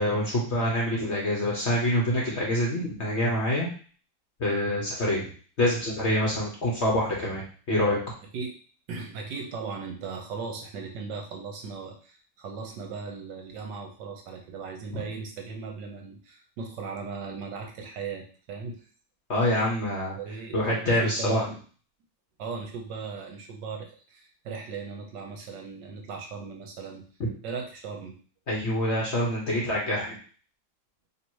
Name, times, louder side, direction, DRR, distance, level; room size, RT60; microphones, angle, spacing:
voice 1, 0.0-3.7 4.4-5.3 5.6-8.0 14.9-15.0 19.3-20.2 20.5-21.5 28.5-30.2, left 1 dB, 45° left, -3 dB, 1.0 m, -26 dB
voice 2, 8.9-18.9 19.4-19.5 19.9-21.5 22.4-27.0 27.4-28.2, right 5 dB, 70° right, 2 dB, 1.3 m, -38 dB
3.2 x 2.9 x 4.5 m, 0.41 s
omnidirectional pair, 2.1 m